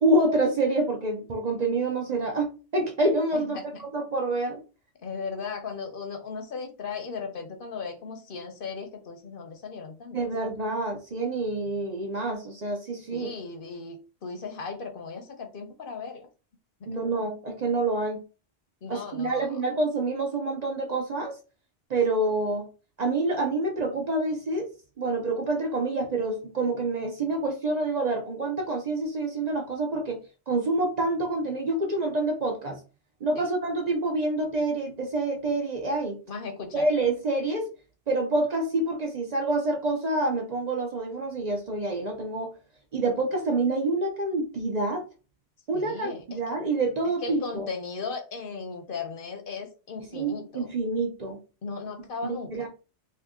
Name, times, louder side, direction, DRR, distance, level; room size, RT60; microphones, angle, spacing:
voice 1, 0.0-4.6 10.1-13.3 16.9-18.2 18.9-21.4 21.9-22.7 23.0-24.7 25.0-30.2 30.5-32.8 33.2-36.2 36.7-37.7 38.1-42.5 42.9-45.1 45.7-47.7 50.1-51.4 52.2-52.7, right 2 dB, 45° right, 2 dB, 0.6 m, -27 dB
voice 2, 3.3-3.8 5.0-10.2 13.1-16.3 16.9-17.1 18.8-19.5 33.4-33.5 36.3-36.9 45.7-46.4 47.2-50.7 51.6-52.7, left 4 dB, 55° left, 5 dB, 0.8 m, -37 dB
2.8 x 2.5 x 3.5 m, 0.34 s
omnidirectional pair, 1.2 m